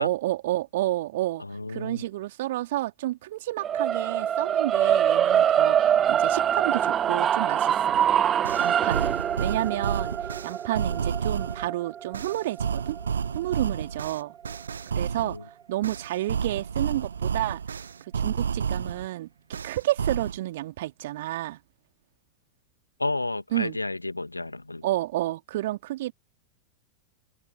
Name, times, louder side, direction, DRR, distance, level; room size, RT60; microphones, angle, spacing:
voice 1, 0.0-1.4 1.7-7.9 8.6-10.1 10.4-13.0 13.3-14.4 14.9-15.4 15.7-17.6 18.1-19.3 19.6-21.6 23.5-23.8 24.8-26.1, right 15 dB, 55° right, 3.0 m, -30 dB
voice 2, 1.4-2.0 15.2-15.4 23.0-24.9, left 2 dB, 85° left, 1.9 m, -31 dB
sound 1, 3.6-13.8, right 9 dB, 25° right, 0.5 m, -24 dB
sound 2, 7.9-8.0 8.4-11.7 12.1-15.4 15.8-19.1 19.5-20.4, right 6 dB, 70° right, 0.8 m, -30 dB
figure-of-eight pair, 90°, 0 cm